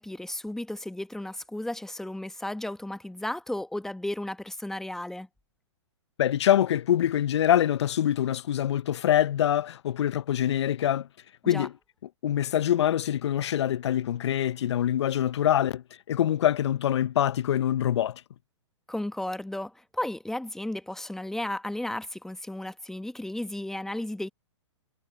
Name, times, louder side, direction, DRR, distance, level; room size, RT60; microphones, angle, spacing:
voice 1, 0.0-5.3 11.4-11.7 18.9-24.3, left 1 dB, 5° left, 1.1 m, -34 dB
voice 2, 6.2-11.1 11.4-11.7 12.2-15.8 16.1-18.2, left 11 dB, 65° left, 0.7 m, -24 dB
hypercardioid pair, 120°, 16 cm